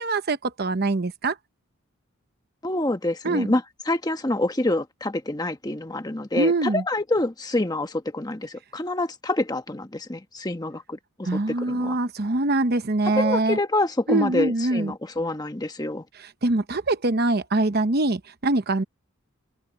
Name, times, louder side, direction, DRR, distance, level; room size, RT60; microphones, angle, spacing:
voice 1, 0.0-1.4 3.2-3.5 6.4-6.8 11.2-13.6 14.1-14.9 16.2-18.8, right 2 dB, 45° right, 0.9 m, -23 dB
voice 2, 2.6-12.0 13.1-16.0, left 2 dB, 20° left, 1.2 m, -27 dB
open air
head